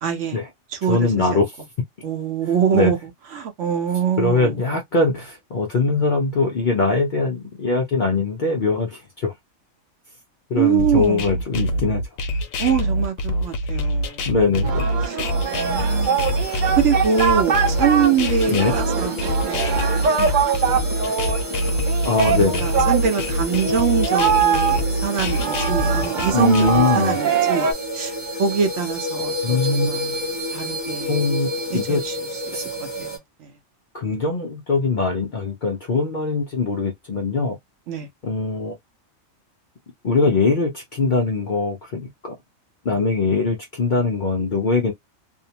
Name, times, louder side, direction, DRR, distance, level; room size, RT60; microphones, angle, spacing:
voice 1, 0.0-0.4 0.7-1.4 2.0-3.0 3.3-4.6 10.5-11.4 12.6-14.3 15.1-16.3 16.7-19.1 19.4-20.3 20.7-21.3 22.2-28.1 28.4-30.1 30.5-31.2 31.9-32.2 32.5-33.5 37.9-38.1, right 8 dB, 70° right, 0.9 m, -24 dB
voice 2, 0.9-1.5 2.7-2.9 4.2-9.3 10.5-12.0 14.3-14.9 18.5-18.7 22.0-22.7 26.3-27.2 29.4-30.3 31.1-32.0 32.5-32.7 33.9-37.6 38.2-38.8 40.0-42.3 42.8-44.9, left 3 dB, 55° left, 0.5 m, -21 dB
sound 1, 10.8-26.8, equal, 90° left, 1.0 m, -24 dB
Singing, 14.6-27.7, right 6 dB, 50° right, 0.6 m, -23 dB
sound 2, 15.3-33.2, left 1 dB, 10° left, 0.9 m, -30 dB
2.6 x 2.1 x 2.8 m
omnidirectional pair, 1.4 m